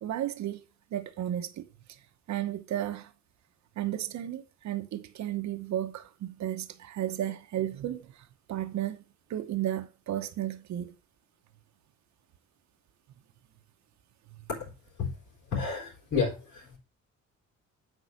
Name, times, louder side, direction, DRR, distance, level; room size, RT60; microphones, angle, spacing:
voice 1, 0.0-0.6 0.9-2.0 2.3-3.1 3.8-9.0 9.3-10.9, right 12 dB, 70° right, 1.0 m, -34 dB
voice 2, 15.5-16.8, left 5 dB, 70° left, 4.6 m, -31 dB
8.3 x 4.7 x 6.3 m
cardioid pair, 90°, 30 cm